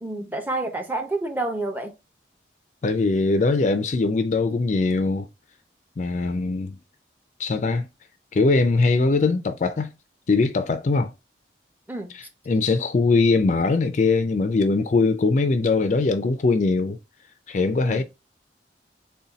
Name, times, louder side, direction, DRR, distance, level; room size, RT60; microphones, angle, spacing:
voice 1, 0.0-1.9 11.9-12.1 17.8-18.0, right 2 dB, 10° right, 0.6 m, -29 dB
voice 2, 2.8-5.3 6.0-6.8 7.4-7.9 8.3-9.9 10.3-11.1 12.5-17.0 17.5-18.0, left 3 dB, 40° left, 0.4 m, -21 dB
4.0 x 2.2 x 3.9 m
head